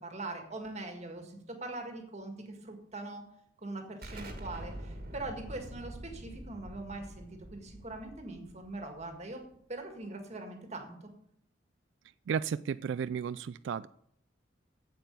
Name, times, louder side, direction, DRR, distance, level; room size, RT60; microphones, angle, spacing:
voice 1, 0.0-3.3 3.6-9.4 9.7-11.0, right 2 dB, 35° right, 4 dB, 1.8 m, -42 dB
Explosion, 4.0-9.5, right 1 dB, 50° right, 1.7 m, -46 dB
voice 2, 12.3-13.9, right 7 dB, 70° right, 16 dB, 0.3 m, -33 dB
9.0 x 7.9 x 6.8 m, 0.69 s
head